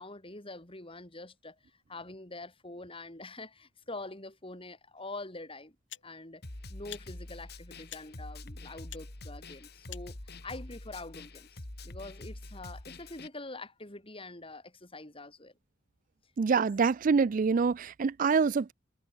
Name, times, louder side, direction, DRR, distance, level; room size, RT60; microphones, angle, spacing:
voice 1, 0.0-1.6 1.9-5.8 6.0-6.4 6.7-15.5, left 2 dB, 30° left, 5.8 m, -45 dB
sound 1, 5.0-5.1 5.9-6.1 6.9-7.1 7.9-8.1 8.9-9.1 9.9-10.1, left 12 dB, 70° left, 6.2 m, -46 dB
Snare drum, 6.4-13.3, left 2 dB, 55° left, 2.7 m, -45 dB
voice 2, 16.4-18.7, right 5 dB, 45° right, 0.4 m, -26 dB
head